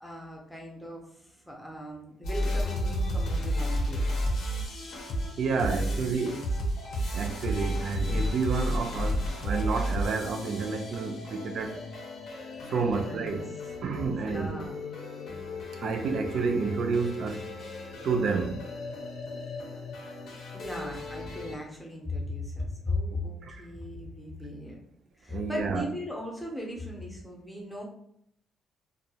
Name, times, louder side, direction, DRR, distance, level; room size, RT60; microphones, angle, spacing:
voice 1, 0.0-4.0 5.6-6.0 6.2-6.4 12.7-13.4 14.3-14.8 20.5-24.8 25.2-27.8, left 1 dB, ahead, 0.5 m, -37 dB
sound 1, 2.2-21.6, equal, 60° left, 0.6 m, -33 dB
voice 2, 5.4-6.4 7.1-11.8 12.7-13.4 13.8-14.5 15.8-17.5 18.0-18.6 23.4-23.6 25.3-25.8, right 5 dB, 55° right, 0.3 m, -29 dB
2.2 x 2.0 x 2.7 m
cardioid pair, 165°, 0 cm